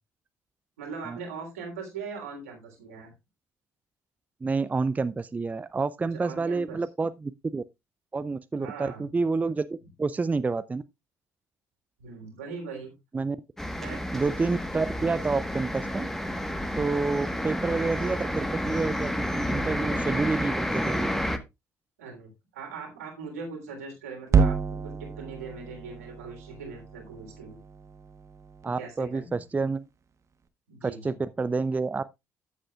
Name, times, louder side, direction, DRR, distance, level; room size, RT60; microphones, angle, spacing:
voice 1, 0.8-3.1 6.1-6.8 8.6-9.1 12.0-12.9 13.8-14.0 22.0-27.6 28.6-29.3 30.7-31.2, right 5 dB, 80° right, 3.4 m, -40 dB
voice 2, 4.4-7.6 8.1-9.7 10.0-10.8 13.1-13.4 14.1-16.1 16.8-21.1 28.6-29.8 30.8-32.0, right 4 dB, 20° right, 0.5 m, -28 dB
sound 1, 13.6-21.4, equal, 5° left, 1.3 m, -30 dB
sound 2, 24.3-28.6, right 5 dB, 40° right, 1.2 m, -29 dB
13.5 x 7.5 x 2.4 m
figure-of-eight pair, 50°, 8 cm